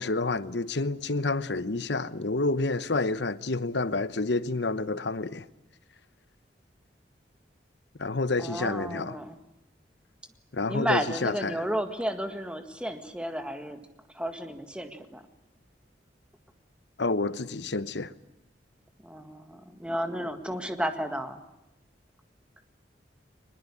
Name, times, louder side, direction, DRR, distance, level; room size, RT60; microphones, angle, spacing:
voice 1, 0.0-5.5 8.0-9.2 10.5-11.6 17.0-18.1, left 3 dB, 75° left, 1.0 m, -29 dB
voice 2, 8.4-9.4 10.7-13.8 14.1-15.2 19.0-21.4, equal, 5° right, 1.8 m, -32 dB
23.5 x 20.5 x 9.9 m
head